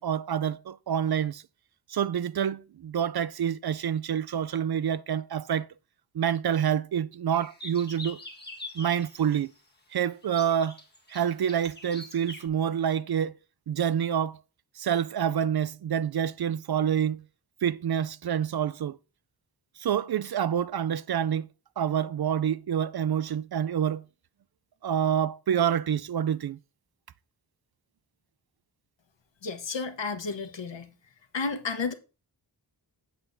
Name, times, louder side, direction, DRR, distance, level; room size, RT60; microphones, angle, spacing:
voice 1, 0.0-1.4 1.9-5.7 6.1-8.2 8.7-9.5 9.9-10.8 11.1-13.4 13.7-14.4 14.8-17.2 17.6-19.0 19.8-21.5 21.8-24.0 24.8-26.6, right 9 dB, 55° right, 0.5 m, -27 dB
sound 1, 7.3-9.5 10.2-12.5, left 2 dB, 20° left, 1.5 m, -44 dB
voice 2, 29.4-30.9 31.3-31.9, left 4 dB, 70° left, 1.2 m, -32 dB
8.7 x 7.9 x 2.7 m
wide cardioid pair, 70°, 45 cm